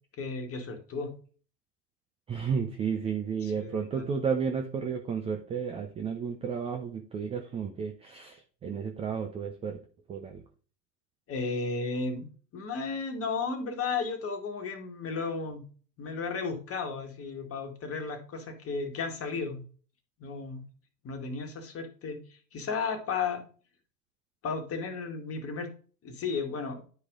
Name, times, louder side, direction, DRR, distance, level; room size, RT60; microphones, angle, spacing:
voice 1, 0.2-1.2 3.4-4.1 11.3-12.3 12.5-15.6 16.0-19.6 20.2-20.6 21.0-22.2 22.5-23.5 24.4-25.7 26.0-26.8, left 4 dB, 25° left, 5 dB, 1.8 m, -34 dB
voice 2, 2.3-9.8 10.1-10.4, right 6 dB, 15° right, 5 dB, 0.5 m, -32 dB
10.0 x 4.8 x 3.7 m, 0.42 s
hypercardioid pair, 100°, 50 cm